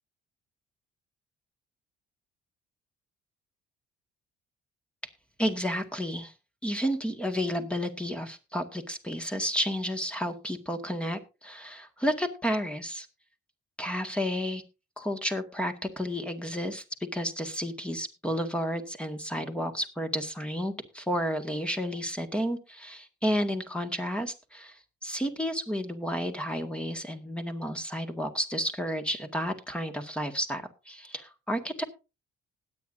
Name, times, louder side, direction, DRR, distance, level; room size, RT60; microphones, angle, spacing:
voice 1, 5.4-6.3 6.6-13.1 13.8-14.6 15.0-16.8 17.1-31.8, equal, 5° left, 6 dB, 1.7 m, -31 dB
20.0 x 8.7 x 2.6 m, 0.29 s
cardioid pair, 110°, 17 cm